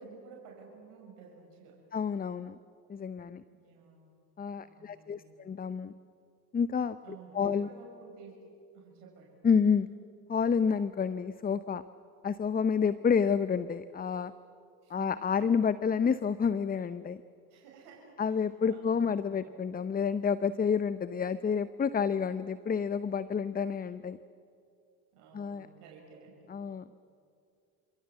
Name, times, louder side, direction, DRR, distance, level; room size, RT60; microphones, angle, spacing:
voice 1, 0.0-1.8 3.5-4.1 4.5-5.4 7.0-8.4 8.7-9.4 14.8-15.1 17.5-19.3 25.1-26.5, right 5 dB, 60° right, -1 dB, 6.4 m, -52 dB
voice 2, 1.9-2.6 2.9-3.4 4.4-5.9 6.5-7.0 7.3-7.7 9.4-9.9 10.3-11.8 12.2-14.3 14.9-17.2 18.2-24.2 25.3-25.7 26.5-26.8, left 6 dB, 20° left, 15 dB, 0.8 m, -29 dB
29.0 x 27.5 x 7.4 m, 2.4 s
figure-of-eight pair, 60°, 46 cm